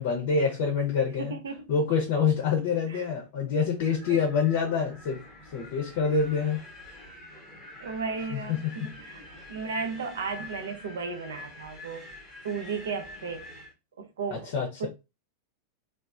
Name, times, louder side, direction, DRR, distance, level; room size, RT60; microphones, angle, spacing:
voice 1, 0.0-1.4 1.7-5.2 5.5-6.6 8.3-8.9 14.3-14.9, left 6 dB, 50° left, 0.6 m, -26 dB
voice 2, 1.2-1.6 2.9-3.1 4.1-4.2 7.8-9.2 9.5-12.1 12.4-13.5 14.0-14.5 14.8-14.9, right 5 dB, 65° right, 0.6 m, -34 dB
Wind, 3.8-13.7, left 2 dB, 5° left, 0.9 m, -46 dB
2.9 x 2.0 x 2.4 m
figure-of-eight pair, 90°, 0 cm